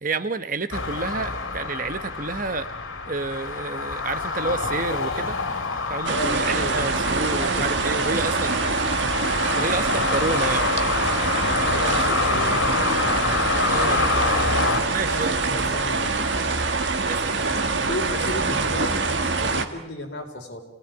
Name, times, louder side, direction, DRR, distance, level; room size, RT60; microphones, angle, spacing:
voice 1, 0.0-2.7 3.1-5.4 5.9-8.6 9.5-10.7 13.7-14.0 14.9-15.4 17.0-17.6, right 3 dB, 40° right, 11 dB, 1.0 m, -29 dB
sound 1, 0.7-14.8, left 4 dB, 85° left, 2.9 m, -27 dB
sound 2, 6.0-19.6, right 3 dB, 65° right, 1.8 m, -24 dB
voice 2, 6.1-6.9 7.1-8.5 11.6-12.8 14.7-16.2 17.9-20.6, left 1 dB, 55° left, 2 dB, 4.3 m, -34 dB
29.0 x 18.5 x 9.2 m, 0.93 s
head